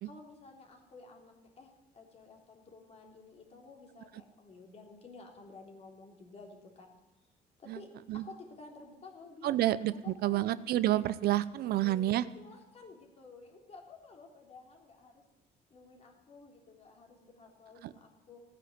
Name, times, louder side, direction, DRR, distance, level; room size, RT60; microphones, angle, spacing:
voice 1, 0.0-6.9 7.6-9.6 10.0-10.5 11.6-15.2 15.7-18.4, left 3 dB, 40° left, 1 dB, 3.5 m, -53 dB
voice 2, 9.4-12.3 17.8-17.9, right 14 dB, 65° right, 16 dB, 0.6 m, -29 dB
16.0 x 9.6 x 8.0 m, 1.1 s
cardioid pair, 110°, 17 cm